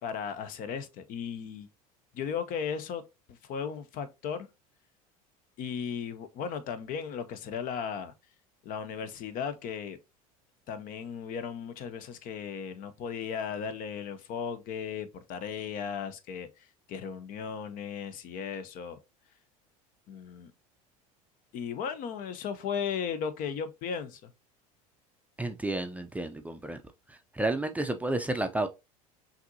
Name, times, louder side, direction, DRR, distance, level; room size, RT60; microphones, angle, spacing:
voice 1, 0.0-1.7 2.1-3.0 3.3-4.5 5.6-8.1 8.6-10.0 10.7-16.5 16.9-19.0 20.1-20.5 21.5-24.3, left 7 dB, 50° left, 0.7 m, -36 dB
voice 2, 25.4-26.8 27.4-28.7, right 2 dB, 10° right, 0.4 m, -31 dB
5.8 x 2.7 x 2.6 m
hypercardioid pair, 80°, 19 cm